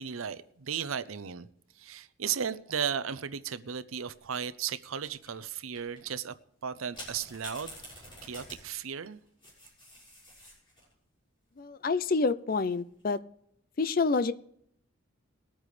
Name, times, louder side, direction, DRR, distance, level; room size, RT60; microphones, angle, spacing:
voice 1, 0.0-1.5 1.8-6.3 6.6-9.2, right 7 dB, 85° right, 0.6 m, -35 dB
sound 1, 3.8-4.2 5.0-5.5 5.8-6.0 6.9-10.9 12.6-13.0, left 1 dB, 25° left, 6.0 m, -48 dB
voice 2, 11.6-13.2 13.8-14.3, left 4 dB, 45° left, 0.5 m, -28 dB
21.0 x 8.9 x 3.3 m
head